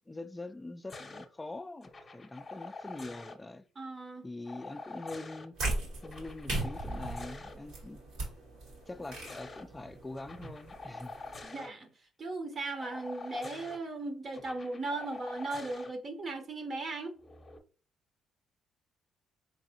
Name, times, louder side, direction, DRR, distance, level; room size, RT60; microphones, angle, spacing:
voice 1, 0.1-3.6 4.2-5.5 6.0-8.0 8.9-11.2, left 2 dB, 15° left, 0.3 m, -44 dB
sound 1, 0.9-1.3 1.8-3.4 4.5-5.5 6.0-7.6 8.9-9.6 10.2-11.7 12.8-13.8 14.3-15.9 17.2-17.6, left 3 dB, 30° left, 0.7 m, -46 dB
voice 2, 3.8-4.3 11.4-11.9 12.2-17.2, right 2 dB, 40° right, 0.8 m, -37 dB
sound 2, 5.5-11.5, right 2 dB, 90° right, 2.1 m, -39 dB
4.0 x 3.3 x 2.7 m
cardioid pair, 90°, 0 cm